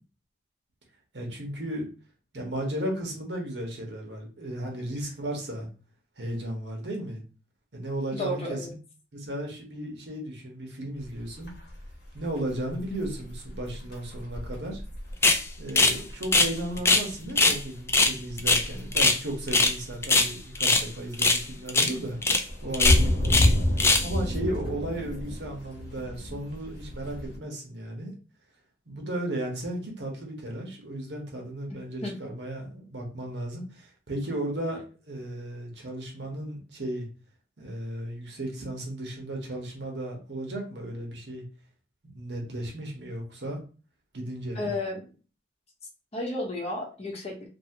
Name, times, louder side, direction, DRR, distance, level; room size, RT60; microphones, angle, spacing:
voice 1, 1.1-1.8 2.3-5.7 6.2-7.2 7.7-8.8 9.1-11.5 12.1-14.8 15.6-22.2 22.6-23.5 24.0-28.1 28.9-37.1 37.6-41.4 42.0-43.6 44.1-44.8, right 1 dB, 80° right, 0 dB, 1.0 m, -35 dB
voice 2, 8.1-8.7 31.7-32.1 44.5-45.0 46.1-47.5, left 1 dB, 35° left, 1 dB, 0.8 m, -32 dB
sound 1, 11.0-27.4, left 1 dB, 65° left, 1.0 m, -30 dB
sound 2, 15.2-15.4 15.8-16.0 16.2-17.1 17.4-17.6 17.9-19.2 19.5-19.8 20.0-20.9 21.2-21.4 21.7-21.9 22.2-22.4 22.7-23.5 23.8-24.1, left 3 dB, 15° left, 0.3 m, -21 dB
2.7 x 2.7 x 2.7 m, 0.35 s
head